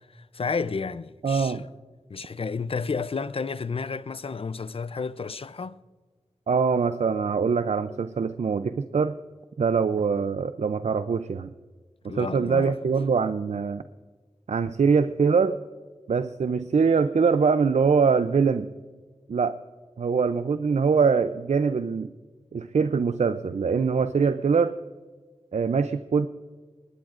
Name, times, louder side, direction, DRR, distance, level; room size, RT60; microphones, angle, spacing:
voice 1, 0.0-1.7 2.1-5.8 12.1-12.9, left 5 dB, 55° left, 0.5 m, -32 dB
voice 2, 1.2-1.6 6.5-9.1 9.6-11.5 12.0-13.8 14.5-15.5 16.1-18.7 19.3-19.6 20.0-22.1 22.5-24.7 25.5-26.3, right 5 dB, 75° right, 0.5 m, -23 dB
20.0 x 19.5 x 2.5 m
wide cardioid pair, 60°, 12 cm